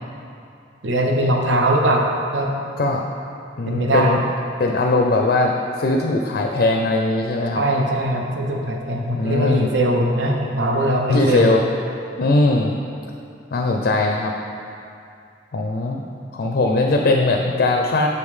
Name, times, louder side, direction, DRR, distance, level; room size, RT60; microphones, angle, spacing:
voice 1, 0.8-2.6 3.7-4.2 7.5-11.5, right 1 dB, 80° right, 1 dB, 0.7 m, -20 dB
voice 2, 3.6-4.2 4.6-7.6 9.1-9.7 11.1-11.6 12.2-12.8 13.5-14.3 15.5-16.0 16.3-18.1, left 2 dB, 55° left, 2 dB, 0.4 m, -20 dB
6.7 x 5.4 x 3.2 m, 2.5 s
head